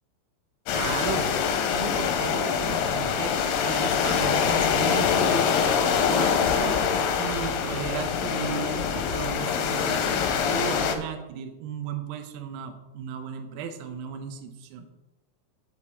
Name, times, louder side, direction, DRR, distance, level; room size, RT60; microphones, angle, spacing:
sound 1, 0.7-11.0, left 7 dB, 85° left, 3.4 m, -24 dB
voice 1, 0.7-1.4 1.7-14.9, right 7 dB, 75° right, 5 dB, 2.5 m, -35 dB
8.1 x 5.2 x 7.1 m, 1.0 s
omnidirectional pair, 5.9 m